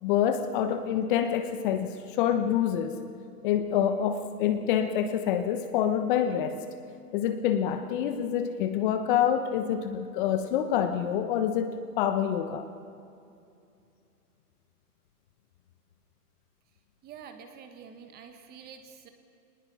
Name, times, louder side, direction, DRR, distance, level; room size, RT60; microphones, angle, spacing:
voice 1, 0.0-3.0 3.4-6.6 7.1-12.7, left 9 dB, 30° left, 8 dB, 1.1 m, -27 dB
voice 2, 17.0-19.1, right 7 dB, 20° right, 7 dB, 1.6 m, -47 dB
24.5 x 20.0 x 5.7 m, 2.5 s
hypercardioid pair, 135°, 47 cm